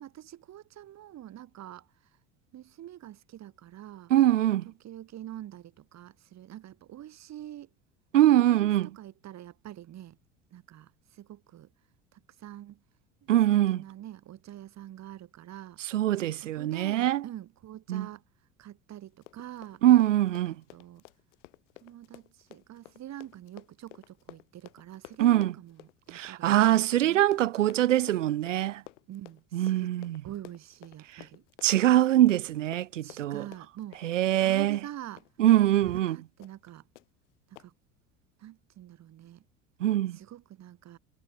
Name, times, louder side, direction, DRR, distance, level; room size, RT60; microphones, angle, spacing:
voice 1, 0.0-1.9 2.5-4.1 4.6-7.7 8.3-10.2 10.5-11.7 12.1-12.8 13.5-15.8 16.4-18.2 18.6-19.8 20.7-21.0 21.8-27.3 29.1-29.9 30.2-31.4 33.0-34.0 34.4-35.3 35.8-36.8 37.5-37.7 38.4-39.4 40.1-41.0, right 12 dB, 45° right, 5.6 m, -45 dB
voice 2, 4.1-4.7 8.1-8.9 13.3-13.8 15.9-17.2 17.9-18.1 19.8-20.6 25.2-25.5 26.1-28.8 29.5-30.2 31.6-33.4 34.0-34.8 35.4-36.2 39.8-40.2, right 13 dB, 85° right, 0.5 m, -23 dB
Run, 19.1-35.7 36.0-36.1 36.4-36.7 37.0-37.1 37.6-37.7, left 18 dB, 70° left, 6.6 m, -53 dB
hypercardioid pair, 70°, 37 cm